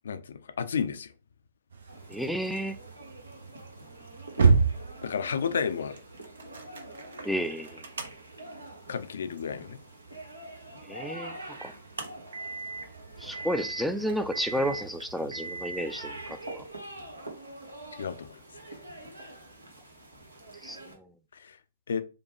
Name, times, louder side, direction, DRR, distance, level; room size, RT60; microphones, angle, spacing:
voice 1, 0.0-1.1 5.0-6.0 8.9-9.8 18.0-18.4 18.6-18.8 21.3-21.6 21.9-22.0, left 6 dB, 65° left, 0.4 m, -32 dB
sound 1, 1.7-16.3, right 4 dB, 70° right, 0.7 m, -33 dB
sound 2, 1.9-20.9, right 1 dB, 85° right, 1.3 m, -46 dB
voice 2, 2.1-2.8 7.2-7.8 10.9-11.7 13.2-16.2 16.5-16.6 20.6-20.8, equal, ahead, 0.3 m, -31 dB
5.0 x 2.2 x 2.9 m
figure-of-eight pair, 120°, 0 cm